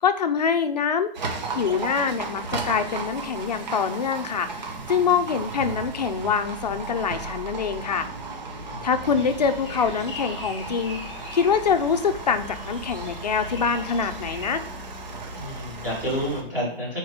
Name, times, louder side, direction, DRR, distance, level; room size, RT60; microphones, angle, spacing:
voice 1, 0.0-1.1 1.5-8.1 8.8-11.0 11.3-14.6, left 6 dB, 40° left, 8 dB, 0.6 m, -24 dB
Livestock farm animals working animals, 1.1-16.4, right 3 dB, 45° right, 1.1 m, -35 dB
sound 1, 9.1-14.5, left 2 dB, 25° left, 1.4 m, -41 dB
voice 2, 15.3-17.0, equal, 10° right, -8 dB, 2.1 m, -30 dB
4.7 x 4.4 x 4.9 m, 0.66 s
hypercardioid pair, 170°, 31 cm